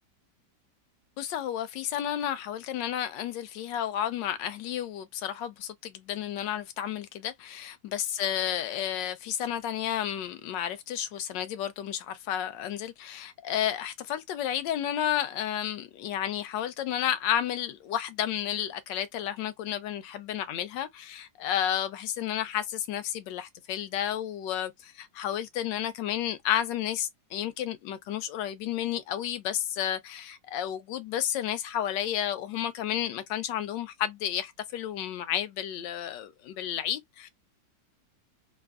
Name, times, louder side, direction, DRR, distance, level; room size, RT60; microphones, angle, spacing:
voice 1, 1.2-37.3, left 11 dB, 80° left, 1.2 m, -32 dB
3.4 x 2.1 x 2.3 m
omnidirectional pair, 2.0 m